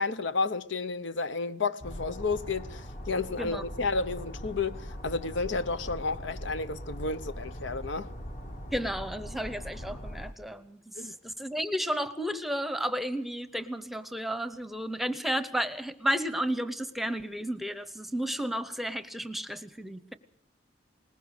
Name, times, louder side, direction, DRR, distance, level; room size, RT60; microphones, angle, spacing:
voice 1, 0.0-8.1 11.0-11.2, left 4 dB, 75° left, 0.8 m, -31 dB
sound 1, 1.8-10.3, equal, 40° left, 1.4 m, -41 dB
voice 2, 8.7-20.1, equal, ahead, 0.8 m, -32 dB
21.0 x 20.0 x 6.5 m
head